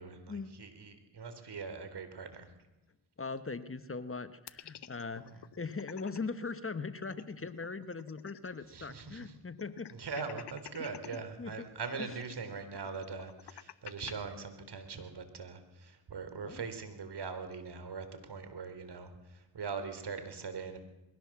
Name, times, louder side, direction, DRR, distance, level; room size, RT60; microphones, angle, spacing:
voice 1, 0.0-2.5 5.2-5.4 8.7-9.3 9.9-20.8, right 5 dB, 55° right, 9 dB, 3.9 m, -42 dB
voice 2, 3.2-5.3 5.6-9.9 10.8-11.7 12.0-12.1 16.4-16.6, left 4 dB, 30° left, 12 dB, 1.3 m, -40 dB
sound 1, 4.5-6.2 6.6-6.7 6.9-8.7 9.0-9.1 9.6-11.2 11.8-14.1, left 10 dB, 55° left, 1.1 m, -50 dB
21.5 x 17.0 x 7.5 m, 1.0 s
supercardioid pair, 55°, 47 cm